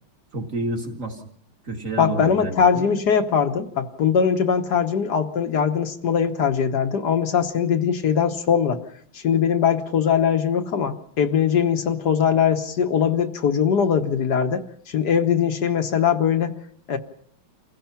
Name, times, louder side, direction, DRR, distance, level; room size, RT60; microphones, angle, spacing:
voice 1, 0.3-1.2 1.6-2.9, right 2 dB, 35° right, 3 dB, 2.7 m, -29 dB
voice 2, 2.0-8.8 9.1-16.6 16.9-17.0, left 7 dB, 55° left, 8 dB, 1.6 m, -21 dB
28.5 x 16.0 x 5.8 m, 0.69 s
omnidirectional pair, 2.3 m